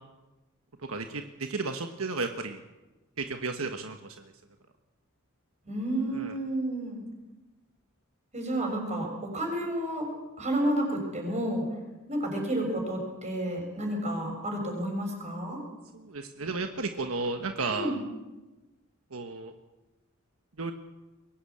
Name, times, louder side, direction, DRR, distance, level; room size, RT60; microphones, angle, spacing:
voice 1, 0.9-2.6 3.2-4.3 6.1-6.3 15.9-18.0 19.1-19.5 20.6-20.7, right 3 dB, 75° right, 6 dB, 1.3 m, -33 dB
voice 2, 5.6-7.0 8.3-10.1 10.4-11.6 12.1-15.6 17.7-18.0, right 1 dB, 35° right, 2 dB, 6.8 m, -30 dB
22.5 x 17.5 x 8.6 m, 1.1 s
head